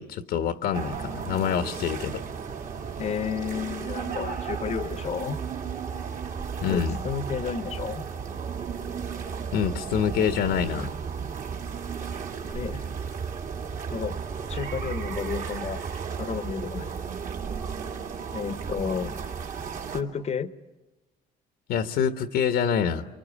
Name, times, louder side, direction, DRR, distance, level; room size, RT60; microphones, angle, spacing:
voice 1, 0.0-2.2 6.6-7.0 9.5-10.9 21.7-23.1, left 7 dB, 75° left, 8 dB, 1.3 m, -26 dB
sound 1, 0.7-20.0, right 6 dB, 50° right, 2.3 m, -34 dB
voice 2, 3.0-5.4 6.7-8.1 12.5-12.9 13.9-14.2 14.5-15.8 16.2-16.9 18.3-19.2 19.9-20.5, left 7 dB, 40° left, 13 dB, 1.0 m, -31 dB
27.5 x 24.5 x 8.6 m, 1.1 s
cardioid pair, 110°, 17 cm